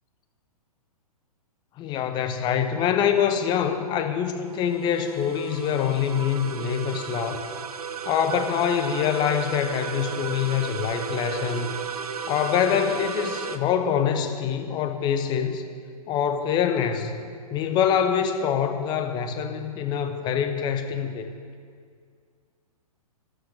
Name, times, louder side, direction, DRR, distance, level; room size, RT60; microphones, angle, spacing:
voice 1, 1.8-7.5 8.1-11.8 12.3-15.6 16.1-17.1 17.5-21.3, left 8 dB, 20° left, 8 dB, 0.8 m, -25 dB
sound 1, 4.5-13.6, right 6 dB, 70° right, 0.8 m, -34 dB
12.5 x 7.3 x 6.3 m, 2.2 s
figure-of-eight pair, 120°, 20 cm